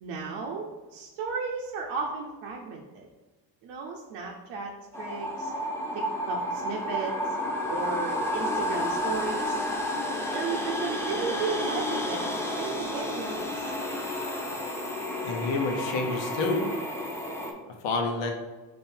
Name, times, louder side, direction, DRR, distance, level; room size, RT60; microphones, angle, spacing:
voice 1, 0.0-3.1 3.6-4.7 5.0-5.5 5.9-7.4 7.7-9.6 10.3-12.3 12.6-13.7, right 5 dB, 75° right, -1 dB, 0.7 m, -34 dB
sound 1, 4.9-17.5, left 1 dB, 5° left, 0.5 m, -31 dB
voice 2, 15.2-16.7 17.8-18.3, left 3 dB, 70° left, 3 dB, 0.9 m, -28 dB
3.7 x 2.6 x 4.3 m, 1.2 s
cardioid pair, 85°, 45 cm